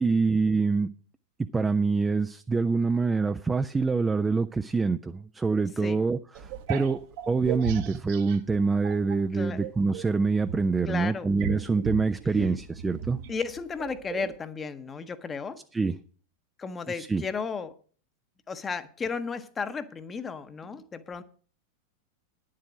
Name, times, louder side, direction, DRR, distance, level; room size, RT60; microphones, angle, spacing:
voice 1, 0.0-0.9 1.5-7.0 7.3-13.2 15.7-15.9 16.9-17.2, right 4 dB, 15° right, 10 dB, 0.4 m, -25 dB
sound 1, 6.3-9.2 9.6-14.4, right 9 dB, 50° right, 1.1 m, -37 dB
voice 2, 9.3-9.6 10.9-11.3 13.3-15.6 16.6-17.7 18.5-21.2, left 5 dB, 20° left, 11 dB, 0.9 m, -34 dB
10.5 x 7.5 x 6.2 m, 0.43 s
figure-of-eight pair, 90°, 0 cm